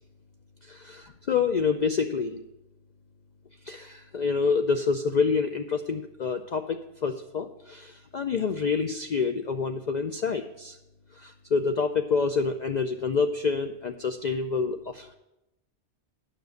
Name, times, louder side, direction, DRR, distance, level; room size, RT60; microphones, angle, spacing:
voice 1, 0.7-2.4 3.7-10.8 11.2-15.1, left 5 dB, 55° left, 6 dB, 0.5 m, -27 dB
9.5 x 6.0 x 6.4 m, 0.90 s
omnidirectional pair, 1.2 m